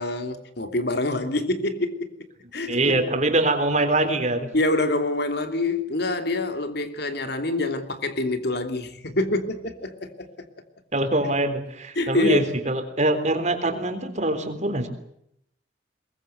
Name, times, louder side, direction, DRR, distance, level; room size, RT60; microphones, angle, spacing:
voice 1, 0.0-2.1 2.5-3.1 4.5-10.3 11.9-12.5, left 2 dB, 60° left, 3.0 m, -26 dB
voice 2, 2.7-4.5 10.9-14.9, right 2 dB, 40° right, 3.8 m, -23 dB
22.5 x 21.5 x 8.0 m
head